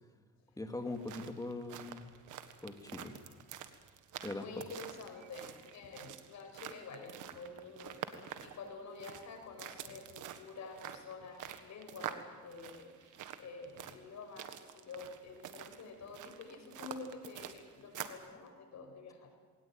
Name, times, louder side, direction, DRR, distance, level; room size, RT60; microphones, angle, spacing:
voice 1, 0.6-2.1 2.6-3.1 4.2-4.4, left 2 dB, 10° left, 5 dB, 2.7 m, -41 dB
sound 1, 0.8-18.3, right 10 dB, 85° right, 1.7 m, -47 dB
voice 2, 4.2-19.3, left 4 dB, 65° left, 4 dB, 6.0 m, -49 dB
21.5 x 18.5 x 9.0 m, 1.5 s
cardioid pair, 90°, 30 cm